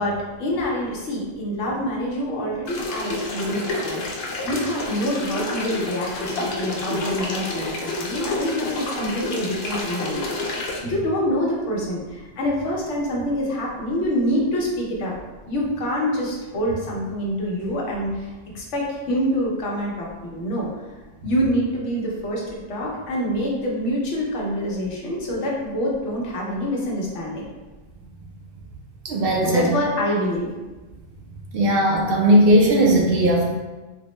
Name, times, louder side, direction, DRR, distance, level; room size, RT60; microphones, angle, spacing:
voice 1, 0.0-10.3 10.8-15.1 15.5-18.3 18.5-20.7 21.2-27.4 29.4-30.5, equal, 85° left, -3 dB, 1.1 m, -26 dB
sound 1, 2.7-10.8, left 2 dB, 65° left, 0.8 m, -29 dB
voice 2, 29.0-29.7 31.5-33.5, right 1 dB, 60° right, -1 dB, 0.7 m, -17 dB
4.0 x 2.0 x 3.0 m, 1.2 s
omnidirectional pair, 1.2 m